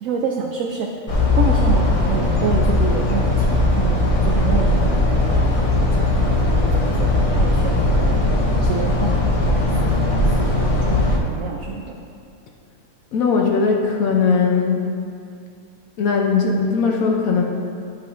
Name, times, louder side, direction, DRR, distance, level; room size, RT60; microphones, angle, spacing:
voice 1, 0.0-0.9 1.4-8.2 8.6-9.7 9.9-11.9, right 5 dB, 70° right, 0 dB, 0.9 m, -28 dB
sound 1, 1.1-11.2, left 2 dB, 50° left, 0.4 m, -18 dB
voice 2, 13.1-14.8 16.0-17.4, left 5 dB, 70° left, 0 dB, 1.0 m, -19 dB
10.5 x 5.6 x 2.5 m, 2.4 s
omnidirectional pair, 1.7 m